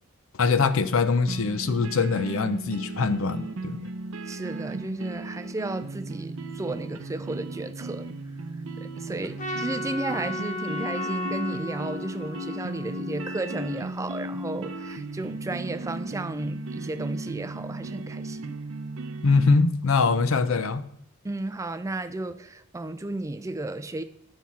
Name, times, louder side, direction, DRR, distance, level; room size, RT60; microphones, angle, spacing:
voice 1, 0.3-3.8 19.2-20.8, left 4 dB, 65° left, 0.5 m, -23 dB
sound 1, 1.3-19.5, right 2 dB, 60° right, 0.6 m, -36 dB
voice 2, 4.3-8.1 8.8-18.6 21.2-24.0, right 2 dB, 15° right, 0.3 m, -33 dB
Trumpet, 9.4-13.8, left 1 dB, 35° left, 0.8 m, -35 dB
9.4 x 5.9 x 4.2 m
head